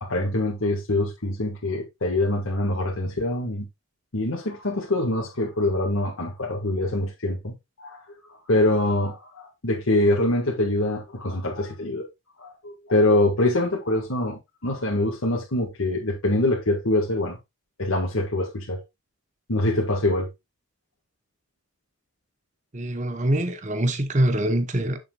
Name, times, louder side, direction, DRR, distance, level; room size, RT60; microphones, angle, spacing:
voice 1, 0.0-3.7 4.1-8.0 8.5-12.1 12.4-17.4 17.8-18.8 19.5-20.3, left 1 dB, 90° left, 1.7 m, -24 dB
voice 2, 22.7-25.0, right 1 dB, 35° right, 1.0 m, -24 dB
8.0 x 7.1 x 2.3 m
head